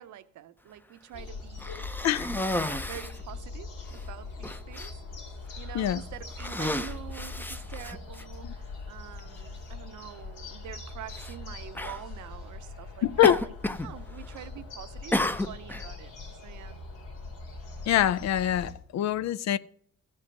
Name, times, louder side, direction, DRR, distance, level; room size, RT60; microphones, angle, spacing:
voice 1, 0.0-1.8 2.5-4.9 5.6-13.5 13.8-16.1 16.4-16.8, right 12 dB, 75° right, 0.7 m, -46 dB
sound 1, 1.1-18.7, left 3 dB, 90° left, 2.7 m, -41 dB
Cough, 1.6-3.2 3.9-4.0 4.4-4.9 5.7-5.9 6.3-8.2 9.2-9.3 11.1-11.3 11.7-12.0 13.2-13.9 14.2-14.6 15.1-15.9, left 1 dB, 5° left, 0.6 m, -32 dB
voice 2, 13.0-13.4 17.9-19.6, left 11 dB, 65° left, 0.5 m, -24 dB
14.5 x 5.4 x 6.5 m
cardioid pair, 90°, 30 cm